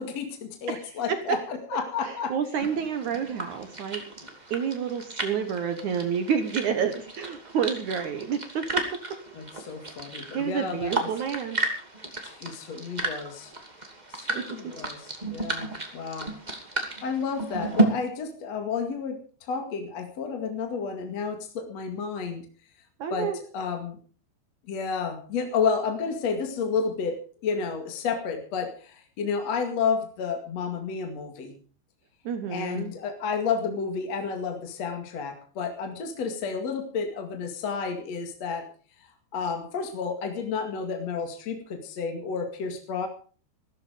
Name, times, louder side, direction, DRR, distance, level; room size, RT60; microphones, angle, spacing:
voice 1, 0.0-2.3 9.3-11.1 12.2-13.5 14.2-16.3 17.0-22.4 23.1-24.0 24.7-31.6 32.5-38.7 39.3-43.1, left 5 dB, 45° left, 4 dB, 2.7 m, -31 dB
voice 2, 0.7-1.2 2.0-4.0 4.5-8.9 10.3-11.6 14.4-14.7 23.0-23.4 32.2-32.9, right 7 dB, 65° right, 8 dB, 2.0 m, -29 dB
sound 1, 2.6-17.8, right 2 dB, 15° right, 1.6 m, -33 dB
15.5 x 14.0 x 5.1 m, 0.41 s
omnidirectional pair, 5.0 m